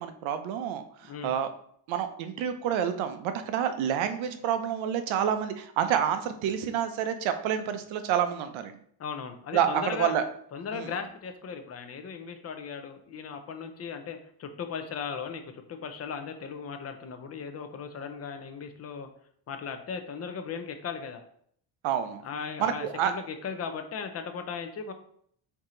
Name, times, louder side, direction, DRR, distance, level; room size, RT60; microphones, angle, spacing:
voice 1, 0.0-1.5 1.9-8.8 9.5-10.2 10.7-10.9 21.8-22.2 22.6-23.1, right 9 dB, 85° right, 9 dB, 0.7 m, -28 dB
voice 2, 9.0-10.1 10.5-19.1 19.5-21.2 22.2-24.9, left 6 dB, 35° left, 7 dB, 0.5 m, -37 dB
4.6 x 2.8 x 3.7 m, 0.64 s
cardioid pair, 135°, 46 cm